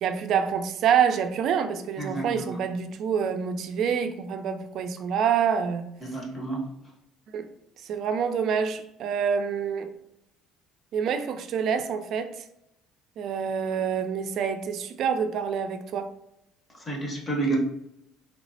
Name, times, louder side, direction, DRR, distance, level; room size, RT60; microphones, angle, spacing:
voice 1, 0.0-5.9 7.3-7.5 7.8-9.9 10.9-12.4 13.2-16.1, right 7 dB, 60° right, 7 dB, 0.3 m, -27 dB
voice 2, 2.0-2.6 6.0-6.7 16.8-17.6, right 3 dB, 25° left, 0 dB, 0.8 m, -30 dB
3.1 x 2.0 x 2.6 m, 0.80 s
cardioid pair, 105°, 0 cm